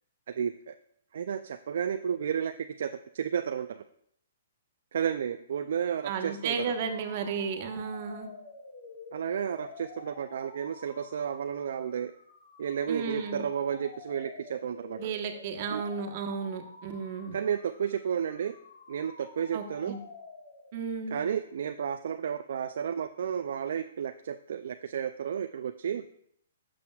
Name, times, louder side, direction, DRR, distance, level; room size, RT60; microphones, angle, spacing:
voice 1, 0.3-0.7 1.1-3.8 4.9-6.6 9.1-12.1 12.6-15.0 15.7-15.8 17.3-18.6 18.9-19.9 21.1-26.0, right 8 dB, 65° right, 8 dB, 0.3 m, -32 dB
voice 2, 6.0-8.3 12.9-13.4 15.0-17.3 19.5-20.0 20.7-21.2, right 5 dB, 45° right, 5 dB, 1.2 m, -33 dB
sound 1, 6.3-21.0, left 3 dB, 60° left, 1.6 m, -49 dB
12.0 x 6.2 x 2.3 m, 0.68 s
hypercardioid pair, 135°, 0 cm